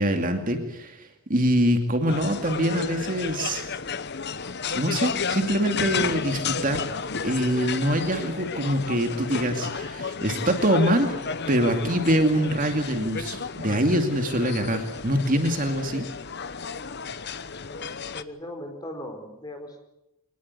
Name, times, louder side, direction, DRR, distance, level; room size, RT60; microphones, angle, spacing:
voice 1, 0.0-3.6 4.7-6.8 7.2-11.1 11.5-16.1, equal, 40° right, 5 dB, 2.5 m, -24 dB
sound 1, 2.1-18.2, left 5 dB, 50° left, 1.0 m, -32 dB
voice 2, 18.1-19.8, left 1 dB, 15° left, 5 dB, 4.4 m, -38 dB
24.0 x 19.5 x 9.7 m, 0.87 s
head